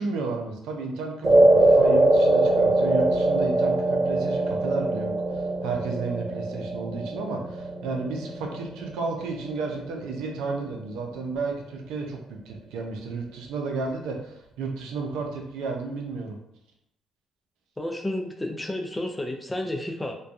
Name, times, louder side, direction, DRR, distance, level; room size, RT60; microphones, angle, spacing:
voice 1, 0.0-16.4, right 3 dB, 80° right, 2 dB, 0.5 m, -32 dB
sound 1, 1.2-9.7, right 2 dB, 45° right, 1.2 m, -22 dB
voice 2, 17.8-20.1, left 1 dB, 10° left, 2 dB, 0.4 m, -31 dB
2.5 x 2.2 x 2.4 m, 0.79 s
cardioid pair, 80°, 0 cm